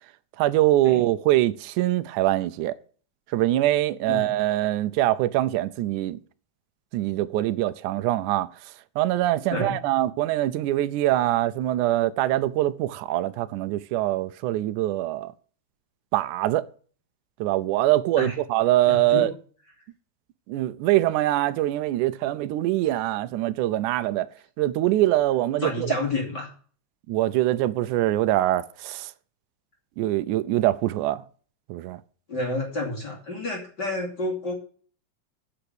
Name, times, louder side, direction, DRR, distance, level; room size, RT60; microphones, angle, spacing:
voice 1, 0.4-2.7 3.3-6.2 6.9-8.5 9.0-15.3 16.1-16.7 17.4-19.3 20.5-24.3 24.6-25.9 27.1-29.1 30.0-31.2 31.7-32.0, right 15 dB, 85° right, 2.1 m, -23 dB
voice 2, 18.9-19.3 25.6-26.5 32.3-34.5, left 2 dB, 35° left, 3.2 m, -29 dB
10.0 x 6.0 x 8.0 m
omnidirectional pair, 3.5 m